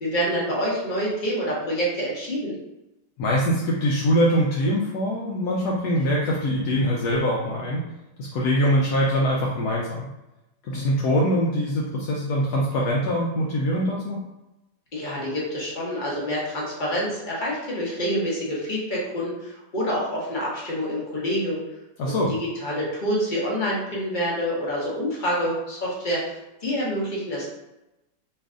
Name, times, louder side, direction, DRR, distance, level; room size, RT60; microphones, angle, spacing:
voice 1, 0.0-2.5 14.9-21.6 22.0-27.4, equal, 35° left, -5 dB, 0.8 m, -27 dB
voice 2, 3.2-7.8 8.2-10.1 10.7-14.2 22.0-22.3, equal, 70° left, -4 dB, 1.0 m, -23 dB
3.2 x 2.4 x 3.6 m, 0.95 s
omnidirectional pair, 1.9 m